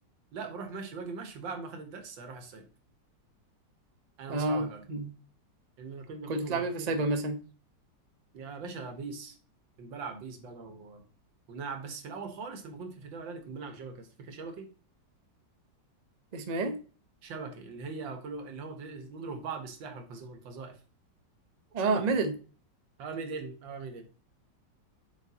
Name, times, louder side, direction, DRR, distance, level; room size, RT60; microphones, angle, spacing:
voice 1, 0.3-2.7 4.2-4.8 5.8-7.1 8.3-9.4 9.8-11.0 11.5-14.7 17.2-20.8 21.8-22.0 23.0-24.1, right 4 dB, 85° right, 6 dB, 1.9 m, -41 dB
voice 2, 4.3-5.1 6.3-7.4 16.3-16.8 21.7-22.3, right 3 dB, 55° right, 7 dB, 0.4 m, -29 dB
7.5 x 4.5 x 2.8 m, 0.37 s
omnidirectional pair, 2.0 m